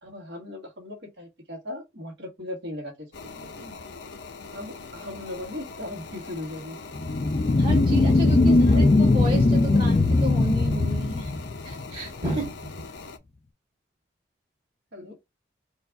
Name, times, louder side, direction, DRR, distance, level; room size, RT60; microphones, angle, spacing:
voice 1, 0.0-3.8 4.5-6.8 8.5-8.9 14.9-15.1, left 1 dB, 65° right, 1.8 m, -38 dB
sound 1, 3.1-13.2, left 4 dB, 80° left, 0.7 m, -42 dB
sound 2, 7.0-11.9, left 2 dB, 35° left, 0.3 m, -20 dB
voice 2, 7.6-11.3 11.6-12.7, right 2 dB, 30° right, 1.5 m, -32 dB
4.4 x 2.5 x 4.6 m
head